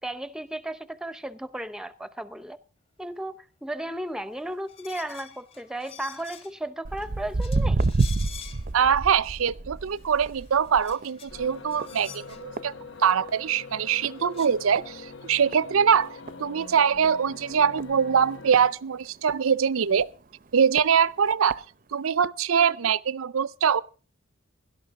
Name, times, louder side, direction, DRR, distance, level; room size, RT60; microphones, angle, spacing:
voice 1, 0.0-2.6 3.0-7.9, right 1 dB, 5° right, 0.7 m, -35 dB
sound 1, 4.7-6.7 7.0-7.1 7.4-8.9 9.4-9.5 9.8-12.4 13.9-14.0 14.2-14.5, left 7 dB, 30° left, 1.6 m, -47 dB
Walk footsteps, 6.9-13.5 13.8-14.2 14.8-14.9 15.5-15.6 16.0-16.1 16.3-16.4 17.0-17.1 17.8-19.4 20.0-20.1 20.8-20.9 21.3-21.6 22.2-22.3, right 3 dB, 40° right, 0.5 m, -29 dB
voice 2, 8.7-12.7 13.0-20.1 20.5-21.6 21.9-23.8, right 7 dB, 85° right, 0.5 m, -23 dB
sound 2, 11.3-18.7, left 4 dB, 60° left, 0.8 m, -43 dB
17.0 x 12.5 x 3.6 m
head